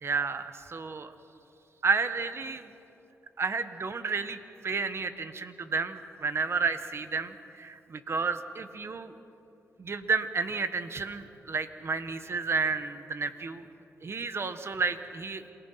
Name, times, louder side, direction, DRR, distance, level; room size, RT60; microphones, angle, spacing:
voice 1, 0.0-1.1 1.8-2.7 3.4-9.2 9.8-13.6 14.0-15.5, right 4 dB, 50° right, 10 dB, 1.6 m, -31 dB
27.5 x 19.0 x 5.9 m, 2.9 s
cardioid pair, 55°, 6 cm